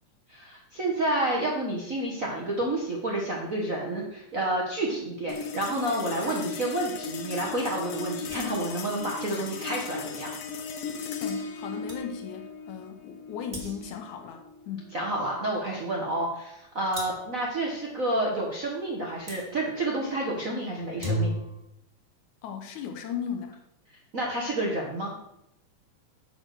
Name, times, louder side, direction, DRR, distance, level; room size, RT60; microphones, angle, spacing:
voice 1, 0.3-10.3 14.9-21.3 24.1-25.1, right 1 dB, 55° right, -2 dB, 0.9 m, -29 dB
sound 1, 5.3-15.9, left 5 dB, 65° left, 1.5 m, -37 dB
sound 2, 8.3-8.8 11.5-11.6 11.9-12.1 13.5-14.1 16.9-17.4 19.3-19.5 20.8-21.6, equal, 20° right, 1.4 m, -34 dB
voice 2, 11.2-15.0 22.4-23.6, left 7 dB, 85° left, 5 dB, 2.3 m, -37 dB
9.5 x 4.2 x 6.5 m, 0.82 s
omnidirectional pair, 3.4 m